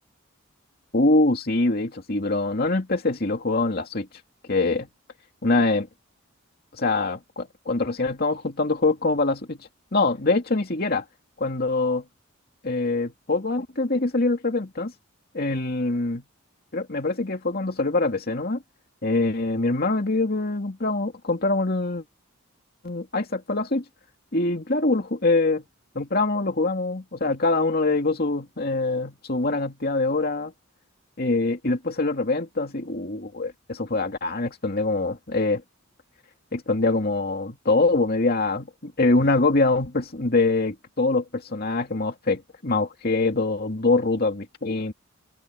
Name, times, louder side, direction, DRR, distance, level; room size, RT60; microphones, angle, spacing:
voice 1, 0.9-4.1 4.5-4.9 5.4-5.9 6.7-9.6 9.9-11.0 11.4-12.0 12.6-14.9 15.3-16.2 16.7-18.6 19.0-22.0 22.8-23.8 24.3-25.6 25.9-30.5 31.2-35.6 36.5-44.9, left 2 dB, 45° left, 2.4 m, -24 dB
head